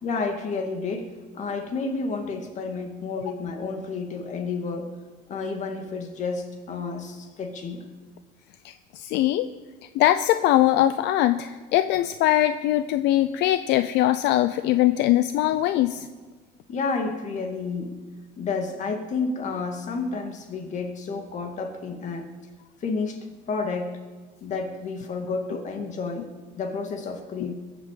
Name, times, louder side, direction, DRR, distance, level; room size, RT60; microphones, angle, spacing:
voice 1, 0.0-4.9 5.3-7.8 16.7-17.9 18.4-22.3 22.8-23.2 23.5-23.9 24.4-26.3 26.6-27.5, left 4 dB, 40° left, 5 dB, 2.3 m, -30 dB
voice 2, 8.6-9.5 9.9-16.1, left 13 dB, 70° left, 12 dB, 0.6 m, -21 dB
21.5 x 8.0 x 7.5 m, 1.4 s
cardioid pair, 140°, 19 cm